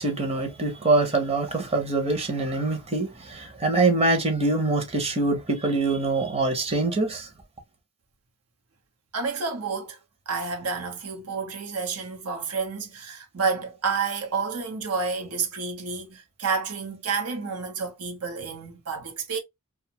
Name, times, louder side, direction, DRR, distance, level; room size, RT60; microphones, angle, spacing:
voice 1, 0.0-7.3, right 3 dB, 30° right, 0.7 m, -24 dB
voice 2, 9.1-10.0 10.3-19.4, right 5 dB, 85° right, 0.9 m, -30 dB
2.6 x 2.3 x 2.8 m
head